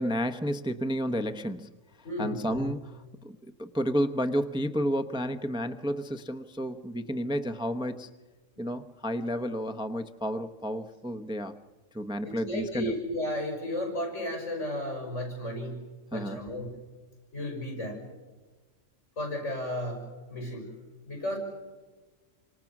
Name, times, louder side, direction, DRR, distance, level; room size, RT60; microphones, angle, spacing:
voice 1, 0.0-1.7 2.2-2.8 3.2-8.1 8.6-11.5 11.9-12.9 16.1-16.4, equal, 5° right, 8 dB, 0.8 m, -31 dB
voice 2, 2.0-2.7 12.2-15.8 16.1-16.7 17.3-18.0 19.2-20.7 21.1-21.4, left 1 dB, 70° left, 3 dB, 6.4 m, -34 dB
29.0 x 26.0 x 6.0 m, 1.3 s
omnidirectional pair, 1.3 m